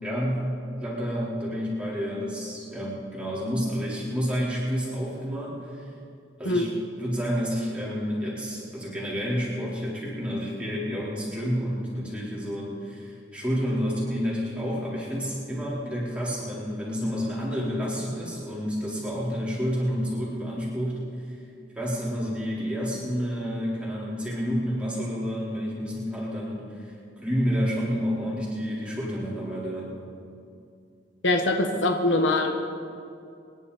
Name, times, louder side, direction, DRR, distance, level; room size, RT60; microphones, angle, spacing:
voice 1, 0.0-0.5 0.8-5.9 6.4-6.7 7.0-21.0 21.8-29.9, equal, 5° right, -7 dB, 3.9 m, -29 dB
voice 2, 31.2-32.5, left 2 dB, 85° left, 4 dB, 1.3 m, -23 dB
24.5 x 11.0 x 4.2 m, 2.4 s
head